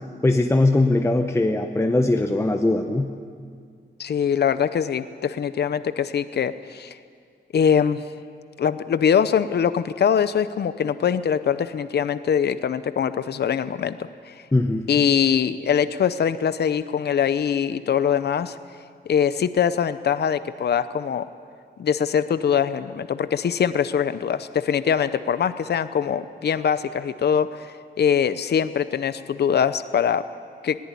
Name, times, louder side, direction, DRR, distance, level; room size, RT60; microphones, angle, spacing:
voice 1, 0.2-3.1 14.5-14.9, left 2 dB, 15° left, 4 dB, 0.9 m, -20 dB
voice 2, 4.0-7.0 7.5-8.0 8.6-14.0 14.2-14.4 14.9-18.6 19.1-21.3 21.8-30.2 30.6-30.8, left 8 dB, 60° left, 13 dB, 0.7 m, -22 dB
20.5 x 18.0 x 9.8 m, 2.1 s
wide cardioid pair, 135°, 19 cm